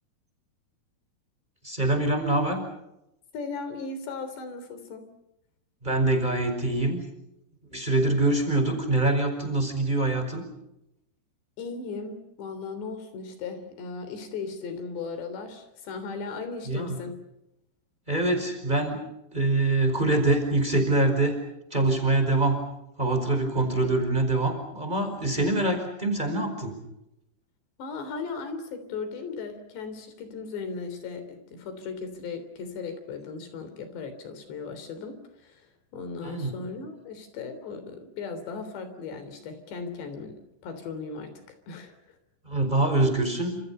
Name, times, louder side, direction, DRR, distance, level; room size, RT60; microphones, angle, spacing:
voice 1, 1.6-2.6 5.8-7.0 7.7-10.4 16.7-17.0 18.1-19.0 19.3-21.3 21.7-22.6 23.0-26.8 36.2-36.5 42.4-43.6, right 2 dB, 10° right, 6 dB, 4.8 m, -24 dB
voice 2, 3.3-5.1 11.6-17.1 27.8-40.4 40.6-42.2, left 4 dB, 90° left, 9 dB, 5.6 m, -37 dB
29.5 x 27.5 x 5.6 m, 0.87 s
omnidirectional pair, 4.8 m